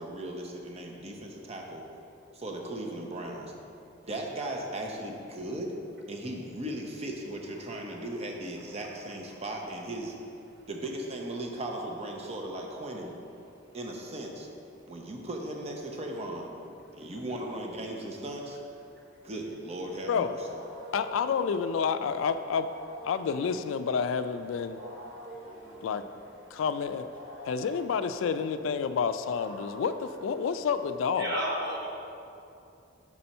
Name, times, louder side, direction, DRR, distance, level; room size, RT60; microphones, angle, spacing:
voice 1, 0.0-1.8 2.3-3.5 4.1-5.8 6.1-10.1 10.7-13.1 13.7-14.5 14.9-16.5 16.9-18.6 19.2-20.5, right 1 dB, 30° right, 1 dB, 0.7 m, -37 dB
Wild animals, 19.9-31.1, equal, 75° right, 1.6 m, -48 dB
voice 2, 20.9-22.7 23.0-24.8 25.8-26.0 26.5-27.1 27.5-31.4, left 6 dB, 80° left, 11 dB, 0.3 m, -29 dB
voice 3, 31.2-31.9, equal, 55° right, -3 dB, 1.2 m, -32 dB
6.1 x 4.3 x 5.3 m, 2.7 s
head